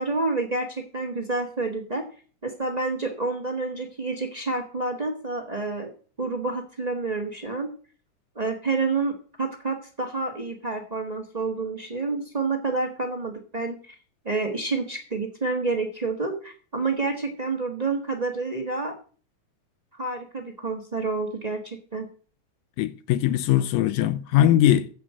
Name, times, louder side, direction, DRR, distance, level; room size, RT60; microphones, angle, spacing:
voice 1, 0.0-2.0 2.4-5.9 6.2-7.7 8.3-13.9 14.2-18.9 19.9-22.1, right 3 dB, 75° right, 0.3 m, -29 dB
voice 2, 22.8-24.9, left 12 dB, 80° left, 2.0 m, -20 dB
14.5 x 5.0 x 7.6 m
omnidirectional pair, 3.4 m